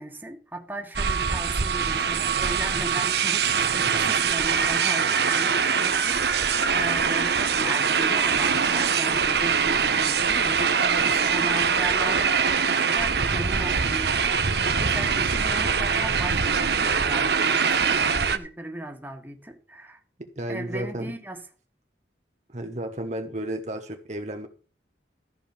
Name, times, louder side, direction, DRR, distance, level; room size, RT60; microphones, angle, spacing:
voice 1, 0.0-20.0 20.5-21.4, right 1 dB, 10° right, 1.8 m, -37 dB
sound 1, 0.9-18.4, right 6 dB, 65° right, 1.0 m, -23 dB
voice 2, 20.2-21.1 22.5-24.5, right 1 dB, 40° right, 1.1 m, -33 dB
14.0 x 5.4 x 7.1 m
head